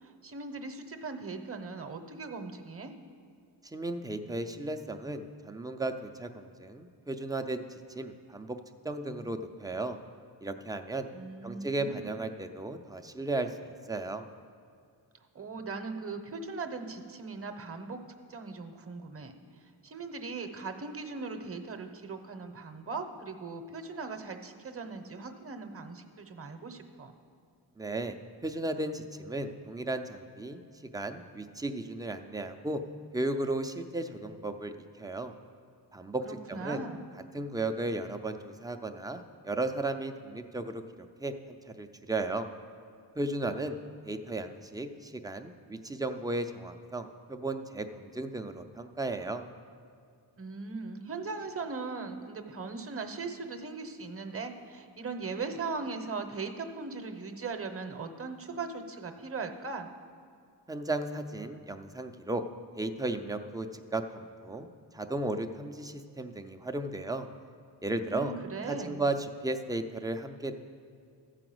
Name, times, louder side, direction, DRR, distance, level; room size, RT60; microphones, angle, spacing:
voice 1, 0.0-2.9 11.1-12.1 15.3-18.0 18.3-19.3 19.8-27.1 36.2-37.1 50.4-59.9 68.0-69.0, right 4 dB, 30° right, 7 dB, 0.9 m, -39 dB
voice 2, 3.7-8.6 8.8-10.0 10.4-11.1 11.4-14.2 27.8-28.2 28.4-30.6 30.9-32.8 33.1-35.3 35.9-36.8 37.3-40.8 41.2-42.5 43.2-43.8 44.0-49.4 60.7-62.4 62.8-63.7 63.9-64.7 64.9-67.3 67.8-68.3 68.7-70.5, right 2 dB, 10° right, 6 dB, 0.5 m, -35 dB
14.0 x 5.0 x 7.8 m, 2.3 s
wide cardioid pair, 115°, 44 cm